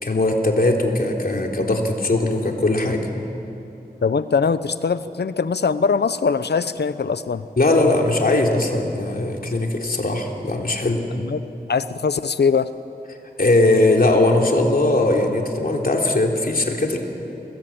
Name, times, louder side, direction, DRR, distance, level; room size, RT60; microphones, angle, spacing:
voice 1, 0.0-3.1 7.6-11.1 13.4-17.0, left 2 dB, 60° left, 1 dB, 3.5 m, -19 dB
voice 2, 4.0-7.5 11.1-11.4 11.7-12.7, left 5 dB, 85° left, 13 dB, 0.9 m, -21 dB
29.0 x 21.0 x 8.8 m, 2.9 s
wide cardioid pair, 55°, 17 cm